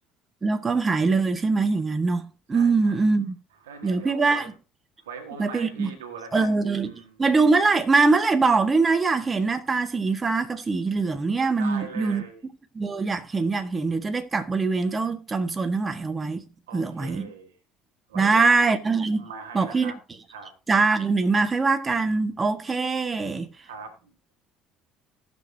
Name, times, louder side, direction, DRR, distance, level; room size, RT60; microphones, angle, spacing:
voice 1, 0.4-3.3 3.8-4.4 5.4-5.9 6.3-6.9 7.2-12.2 12.7-16.4 16.7-17.3 18.1-19.3 19.5-19.9 20.7-23.5, right 4 dB, 25° right, 1.5 m, -23 dB
voice 2, 2.5-3.1 3.6-4.5 5.0-6.6 6.8-7.1 11.6-12.4 16.7-17.5 18.1-18.6 19.1-20.0 20.3-20.5 23.6-24.1, right 5 dB, 85° right, 1.6 m, -41 dB
18.5 x 6.6 x 2.7 m
hypercardioid pair, 60°, 0 cm